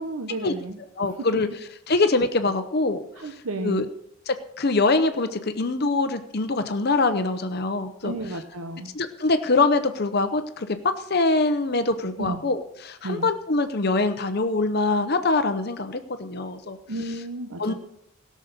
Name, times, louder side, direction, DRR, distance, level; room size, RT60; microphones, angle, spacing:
voice 1, 0.0-0.8 3.2-3.9 8.0-8.9 12.2-12.4 13.0-13.3 16.9-17.7, right 2 dB, 90° right, 5 dB, 0.9 m, -32 dB
voice 2, 1.0-1.5 1.9-3.0 3.6-3.8 4.3-8.1 8.9-10.7 11.1-16.8 17.6-17.7, left 3 dB, 50° left, 9 dB, 0.8 m, -23 dB
17.0 x 6.5 x 6.7 m, 0.76 s
head